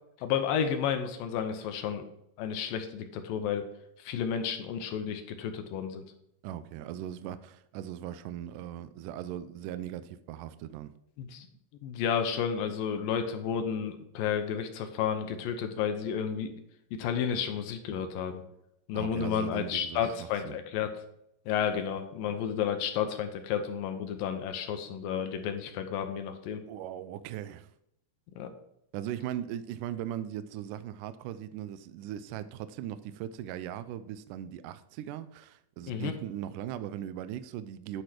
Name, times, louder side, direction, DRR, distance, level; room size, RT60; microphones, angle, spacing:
voice 1, 0.2-2.0 2.4-3.6 4.0-6.0 11.2-11.5 11.8-16.6 16.9-18.4 18.9-20.9 21.5-26.6 28.4-28.5 35.9-36.1, left 8 dB, 80° left, 7 dB, 2.6 m, -31 dB
voice 2, 6.4-10.9 18.9-20.2 20.5-20.6 21.7-21.8 26.7-27.7 28.9-38.0, right 11 dB, 80° right, 12 dB, 1.9 m, -39 dB
10.5 x 4.9 x 4.4 m, 0.77 s
omnidirectional pair, 4.1 m